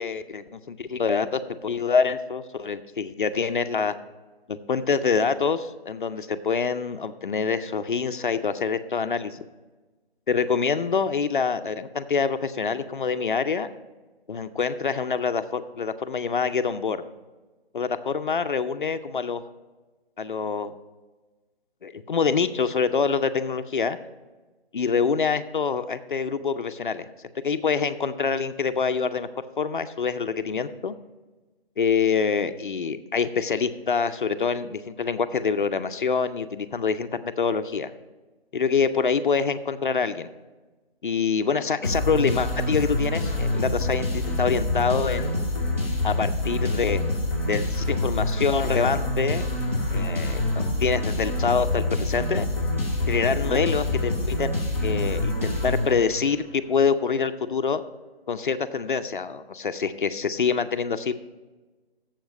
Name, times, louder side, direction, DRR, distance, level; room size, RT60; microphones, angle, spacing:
voice 1, 0.0-3.9 4.5-9.4 10.3-13.7 14.3-17.0 17.7-19.4 20.2-20.7 21.8-24.0 24.7-27.1 27.4-29.3 29.6-30.9 31.8-37.9 38.5-40.3 41.0-45.3 46.0-47.0 47.5-49.5 49.9-52.5 53.1-54.5 54.8-57.8 58.3-61.1, left 5 dB, 55° left, 10 dB, 0.5 m, -25 dB
sound 1, 41.8-56.4, left 1 dB, 15° right, 0.6 m, -26 dB
7.3 x 7.1 x 5.2 m, 1.2 s
hypercardioid pair, 170°, 31 cm